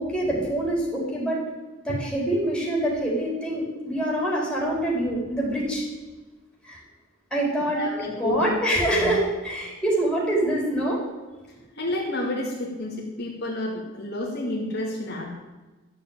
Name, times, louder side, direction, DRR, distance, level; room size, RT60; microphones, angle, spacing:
voice 1, 0.0-1.4 1.8-5.8 6.6-6.8 7.3-7.8 8.2-11.0, right 1 dB, 5° left, -4 dB, 4.6 m, -25 dB
voice 2, 7.7-8.5 8.9-9.1 11.7-15.4, left 1 dB, 55° left, -2 dB, 2.7 m, -30 dB
13.0 x 7.4 x 9.0 m, 1.2 s
head